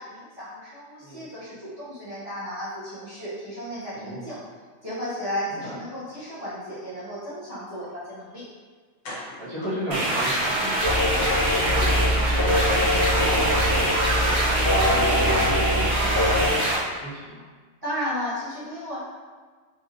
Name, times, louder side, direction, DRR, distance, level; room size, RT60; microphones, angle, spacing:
voice 1, 0.0-4.4 4.8-8.4 17.8-19.0, equal, 20° right, -13 dB, 1.2 m, -34 dB
voice 2, 3.9-4.4 5.5-5.8 9.4-17.4, equal, 15° left, -15 dB, 1.0 m, -35 dB
sound 1, 8.4-8.5 9.0-10.8 11.2-11.3 11.6-11.8 12.0-12.1, left 1 dB, 90° left, 1.1 m, -42 dB
sound 2, 9.9-16.8, right 1 dB, 55° right, 0.4 m, -24 dB
sound 3, 10.8-16.5, left 1 dB, 55° left, 0.7 m, -23 dB
3.3 x 2.5 x 2.5 m, 1.5 s
omnidirectional pair, 1.3 m